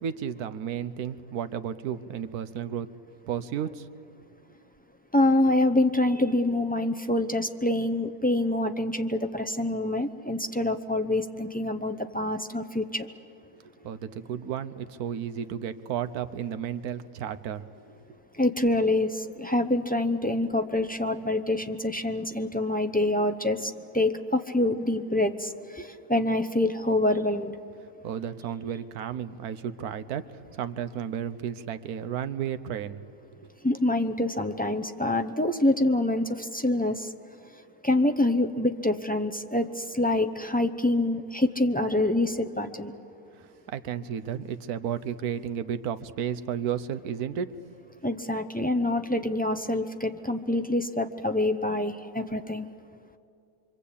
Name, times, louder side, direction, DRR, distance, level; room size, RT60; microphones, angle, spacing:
voice 1, 0.0-2.9 3.3-3.9 13.8-17.7 28.0-33.0 43.3-47.5, right 9 dB, 75° right, 12 dB, 1.3 m, -33 dB
voice 2, 5.1-13.1 18.4-27.5 33.6-37.1 37.8-42.9 48.0-52.7, left 1 dB, 15° left, 6 dB, 0.3 m, -26 dB
25.0 x 25.0 x 8.5 m, 2.6 s
omnidirectional pair, 1.6 m